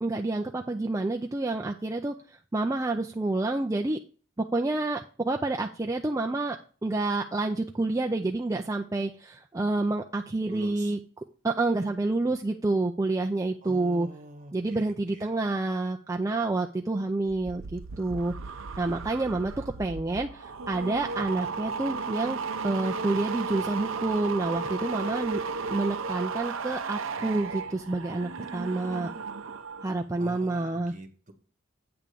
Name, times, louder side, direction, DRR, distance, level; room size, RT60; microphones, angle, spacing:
voice 1, 0.0-4.0 4.5-6.6 6.8-11.0 11.4-14.1 14.5-18.3 18.8-22.4 22.6-25.4 25.7-29.1 29.8-30.9, right 2 dB, 15° right, 2 dB, 0.4 m, -28 dB
voice 2, 10.5-10.9 13.6-15.3 30.2-31.3, right 2 dB, 40° right, 6 dB, 1.3 m, -45 dB
sound 1, 17.3-29.9 30.2-30.6, right 4 dB, 75° right, 0.6 m, -35 dB
8.7 x 3.6 x 6.8 m, 0.39 s
head